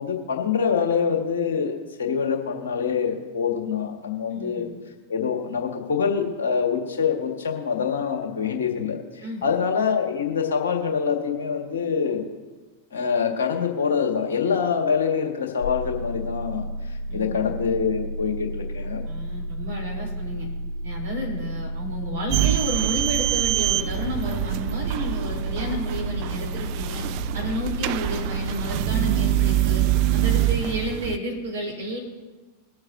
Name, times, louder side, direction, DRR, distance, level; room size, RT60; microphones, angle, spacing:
voice 1, 0.0-4.6 5.1-12.2 12.9-19.0, left 6 dB, 65° left, 2 dB, 1.8 m, -25 dB
voice 2, 4.3-4.7 9.2-9.6 17.1-17.4 19.0-20.5 20.8-27.0 27.3-29.8 30.1-32.0, equal, 65° right, -2 dB, 3.8 m, -31 dB
sound 1, 15.6-29.4, right 1 dB, 45° left, 2.6 m, -32 dB
sound 2, 22.3-31.2, right 14 dB, 45° right, 0.3 m, -25 dB
22.5 x 7.8 x 2.8 m, 1.3 s
figure-of-eight pair, 90°, 0 cm